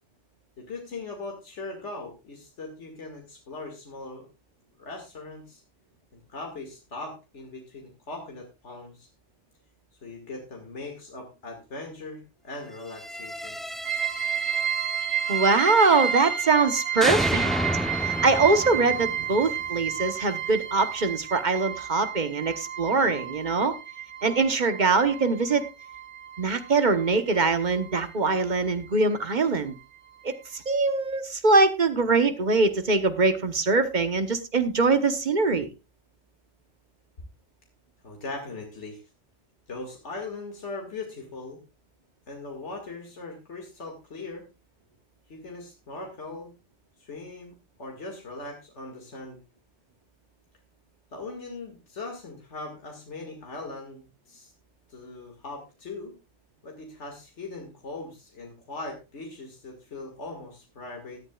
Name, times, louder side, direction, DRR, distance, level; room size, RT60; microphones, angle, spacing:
voice 1, 0.6-4.3 4.8-5.6 6.1-9.1 10.0-13.6 22.9-23.3 38.0-39.0 39.7-41.6 42.3-44.5 45.3-46.5 47.0-49.4 51.1-54.5 54.9-56.1 56.6-61.2, left 3 dB, 80° left, 1 dB, 2.4 m, -40 dB
sound 1, 12.9-16.7 17.0-20.0, equal, ahead, 0.6 m, -32 dB
sound 2, 13.9-28.1 28.4-29.5 29.8-29.9 30.3-30.4, right 9 dB, 85° right, 1.9 m, -32 dB
voice 2, 15.3-17.5 18.0-23.7 24.2-25.6 26.4-29.7 30.2-35.7, right 3 dB, 45° right, 9 dB, 1.2 m, -23 dB
17.5 x 11.0 x 2.4 m, 0.26 s
omnidirectional pair, 1.2 m